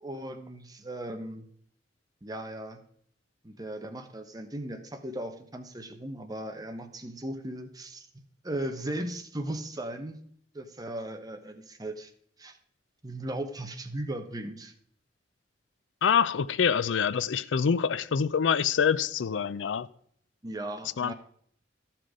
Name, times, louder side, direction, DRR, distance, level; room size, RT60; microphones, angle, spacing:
voice 1, 0.0-1.5 2.2-2.8 3.4-8.1 8.4-10.2 10.5-12.1 12.4-12.6 13.0-14.7 20.4-21.1, right 1 dB, 20° right, 1.0 m, -37 dB
voice 2, 16.0-19.9 21.0-21.1, left 7 dB, 85° left, 0.4 m, -25 dB
13.0 x 5.8 x 5.0 m
head